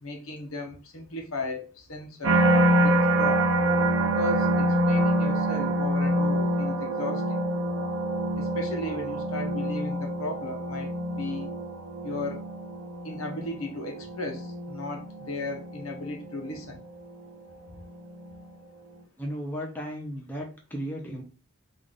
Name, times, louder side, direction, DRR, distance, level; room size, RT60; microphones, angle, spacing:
voice 1, 0.0-3.5 4.0-7.2 8.4-10.9 11.2-11.5 12.0-12.4 13.0-16.8, left 2 dB, 85° left, 3 dB, 0.9 m, -35 dB
Deep Church Bell, 2.2-17.4 18.0-18.4, right 1 dB, 70° right, 0.6 m, -26 dB
voice 2, 19.2-21.2, equal, 10° left, 0 dB, 0.7 m, -35 dB
3.7 x 2.5 x 3.6 m, 0.35 s
head